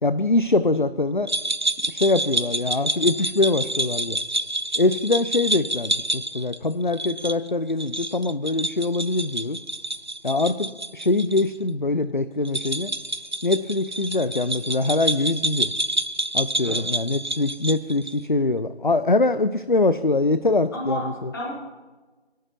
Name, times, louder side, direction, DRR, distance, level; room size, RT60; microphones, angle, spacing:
voice 1, 0.0-1.3 1.9-4.2 4.8-9.6 10.2-12.9 13.4-15.7 16.3-21.3, left 2 dB, 50° left, 12 dB, 0.5 m, -23 dB
sound 1, 1.3-11.4 11.7-11.8 12.4-18.2, right 1 dB, 45° right, 0.5 m, -28 dB
voice 2, 20.7-21.5, equal, 20° left, -4 dB, 2.4 m, -31 dB
29.0 x 11.5 x 3.1 m, 1.3 s
figure-of-eight pair, 165°, 33 cm